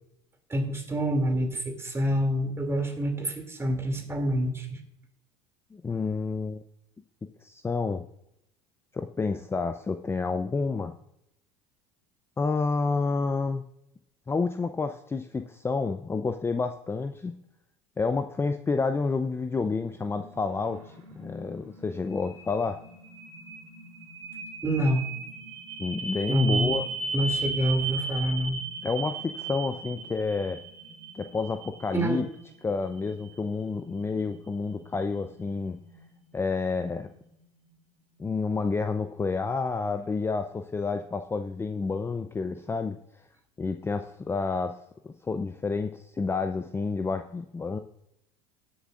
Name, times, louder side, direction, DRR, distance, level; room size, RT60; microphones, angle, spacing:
voice 1, 0.5-4.8 24.6-25.0 26.3-26.7 27.1-28.6 31.9-32.2, equal, 15° right, 4 dB, 2.6 m, -27 dB
voice 2, 5.7-6.6 7.4-8.0 8.9-10.9 12.4-13.6 14.3-17.3 18.0-22.8 25.8-27.0 28.8-30.6 31.1-32.3 32.6-35.8 36.3-37.1 38.2-43.0 43.6-44.8 45.0-47.8, left 4 dB, 15° left, 8 dB, 0.6 m, -29 dB
sound 1, 20.0-37.7, right 4 dB, 85° right, 3.2 m, -38 dB
19.5 x 7.1 x 2.5 m, 0.80 s
hypercardioid pair, 80°, 15 cm